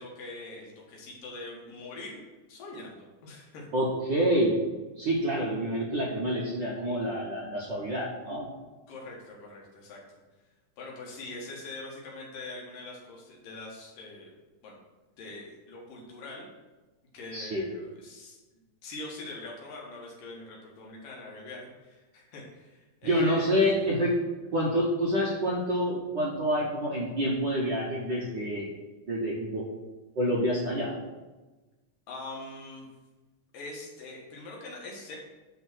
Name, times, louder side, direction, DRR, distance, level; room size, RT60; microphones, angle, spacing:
voice 1, 0.0-2.2 2.5-3.6 8.9-10.2 10.8-14.3 14.6-14.7 15.2-16.5 17.1-18.4 18.8-23.9 32.1-32.9 33.5-35.2, left 2 dB, 80° left, -3 dB, 3.2 m, -43 dB
voice 2, 3.7-4.5 5.0-8.5 17.3-17.7 23.0-24.2 24.5-28.7 29.1-29.7 30.1-30.9, equal, 80° right, -5 dB, 1.0 m, -27 dB
10.5 x 3.7 x 6.1 m, 1.2 s
omnidirectional pair, 3.8 m